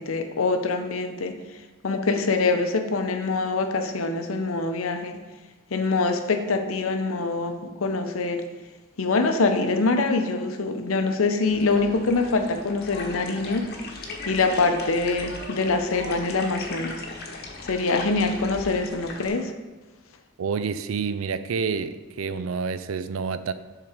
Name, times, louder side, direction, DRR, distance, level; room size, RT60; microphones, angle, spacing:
voice 1, 0.0-1.3 1.8-5.2 5.7-7.5 7.8-8.4 9.0-17.0 17.6-19.5, left 3 dB, 80° left, 6 dB, 0.7 m, -24 dB
sound 1, 11.4-19.3, left 2 dB, 50° left, 1.0 m, -38 dB
voice 2, 20.4-23.5, right 5 dB, 80° right, 12 dB, 0.4 m, -28 dB
7.3 x 3.8 x 4.9 m, 1.2 s
head